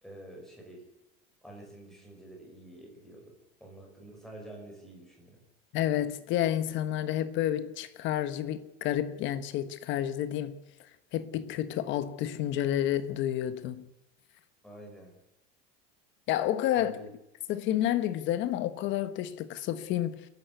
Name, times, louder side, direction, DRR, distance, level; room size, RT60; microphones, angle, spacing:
voice 1, 0.0-0.8 1.4-3.3 3.6-5.4 14.6-15.1 16.7-17.1, right 1 dB, ahead, 5.3 m, -48 dB
voice 2, 5.7-10.6 11.1-13.8 16.3-17.0 17.5-20.3, left 12 dB, 35° left, 1.3 m, -30 dB
30.0 x 11.5 x 8.3 m
cardioid pair, 180°, 32 cm